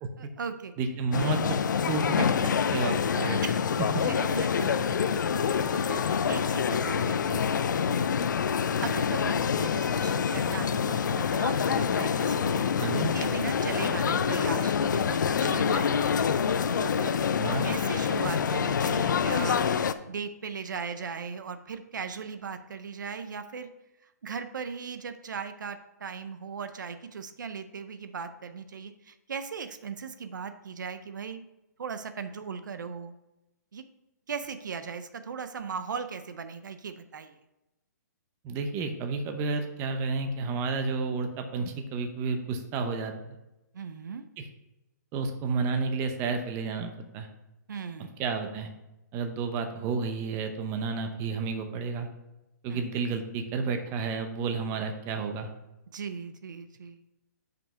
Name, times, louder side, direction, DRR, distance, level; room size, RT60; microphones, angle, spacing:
voice 1, 0.2-0.7 3.4-7.4 8.8-12.6 13.1-17.2 17.6-23.7 24.2-31.4 31.8-33.1 33.7-33.8 34.3-37.4 43.7-44.2 47.7-48.1 52.7-52.8 55.9-57.0, right 6 dB, 85° right, 10 dB, 0.6 m, -38 dB
voice 2, 0.8-1.6 1.9-2.3 2.7-3.4 12.8-13.1 17.4-17.7 38.4-43.1 44.4-44.5 45.1-47.3 48.2-48.7 49.1-52.1 52.6-55.5, right 4 dB, 25° right, 6 dB, 0.8 m, -31 dB
sound 1, 1.1-19.9, left 7 dB, 85° left, 0.5 m, -26 dB
5.6 x 5.3 x 5.6 m, 0.94 s
hypercardioid pair, 150°, 10 cm